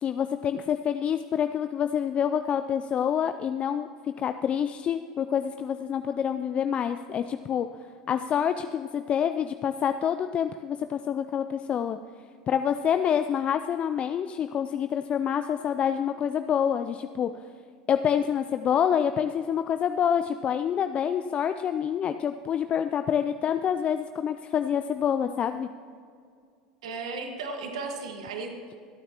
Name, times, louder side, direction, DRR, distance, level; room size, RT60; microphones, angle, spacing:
voice 1, 0.0-3.9 4.2-7.7 8.1-12.0 12.5-17.3 17.9-25.7, left 8 dB, 35° left, 9 dB, 0.4 m, -27 dB
voice 2, 26.8-28.8, right 3 dB, 75° right, 4 dB, 1.6 m, -35 dB
24.5 x 9.0 x 3.0 m, 2.2 s
hypercardioid pair, 85°, 3 cm